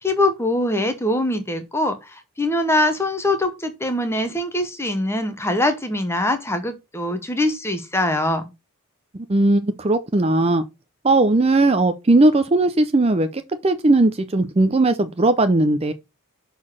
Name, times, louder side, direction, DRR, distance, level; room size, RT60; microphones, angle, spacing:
voice 1, 0.0-8.4, left 1 dB, 10° left, 1.0 m, -23 dB
voice 2, 9.1-10.6 11.0-15.9, right 2 dB, 25° right, 0.5 m, -18 dB
6.2 x 4.0 x 6.2 m
head